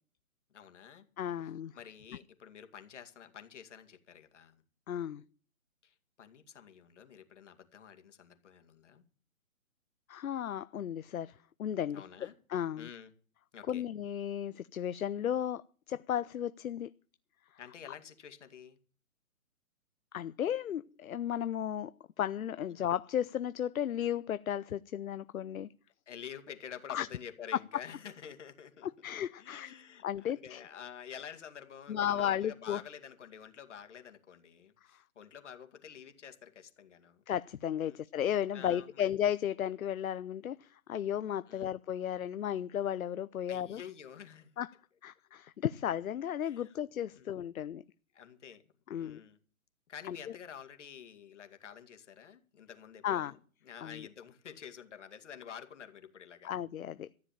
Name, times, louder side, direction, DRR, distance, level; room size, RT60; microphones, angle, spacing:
voice 1, 0.5-1.1 1.4-4.6 5.8-9.0 11.9-12.3 12.8-13.1 13.5-13.8 17.6-18.8 22.8-22.9 26.1-28.9 29.4-37.2 37.8-38.0 38.5-39.0 41.5-41.7 43.5-44.5 46.4-46.8 47.1-47.3 48.1-48.6 49.0-49.4 49.9-53.4 53.6-56.5, left 8 dB, 55° left, 2.4 m, -49 dB
voice 2, 1.2-1.7 4.9-5.2 10.1-12.0 12.5-12.9 13.7-16.9 20.1-21.9 22.2-25.7 26.9-27.1 28.8-29.7 30.0-30.6 31.9-32.8 37.3-43.8 44.6-44.7 45.0-47.8 48.9-49.2 50.1-50.2 53.0-53.3 53.8-54.1 56.4-57.2, left 10 dB, 75° left, 0.7 m, -34 dB
14.0 x 7.5 x 8.8 m
hypercardioid pair, 155°, 42 cm